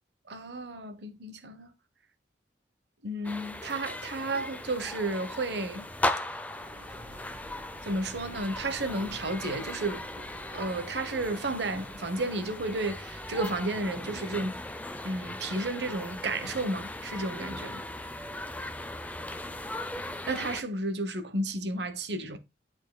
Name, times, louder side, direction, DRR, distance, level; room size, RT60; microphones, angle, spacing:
voice 1, 0.3-1.7 3.0-5.9 7.8-10.1 10.5-14.6 15.0-17.8 20.3-22.4, right 2 dB, 65° right, 1.0 m, -32 dB
sound 1, 3.2-20.6, left 1 dB, 10° left, 0.5 m, -38 dB
Chatter / Car passing by / Motorcycle, 6.5-12.0, right 1 dB, 50° right, 2.4 m, -50 dB
11.0 x 4.5 x 2.2 m
head